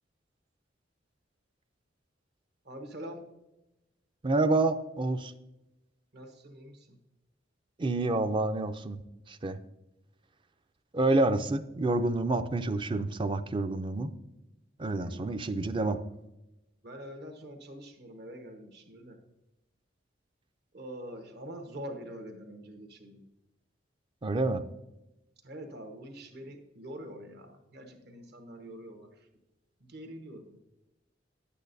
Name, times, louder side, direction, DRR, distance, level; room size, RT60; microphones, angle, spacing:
voice 1, 2.6-3.3 6.1-7.0 14.9-16.0 16.8-19.2 20.7-23.3 25.4-29.3 29.8-30.6, equal, 60° right, 5 dB, 1.2 m, -45 dB
voice 2, 4.2-5.3 7.8-9.0 9.3-9.6 10.9-14.1 14.8-16.0 24.2-24.6, right 2 dB, 25° right, 10 dB, 0.4 m, -28 dB
10.0 x 8.4 x 2.6 m, 0.96 s
head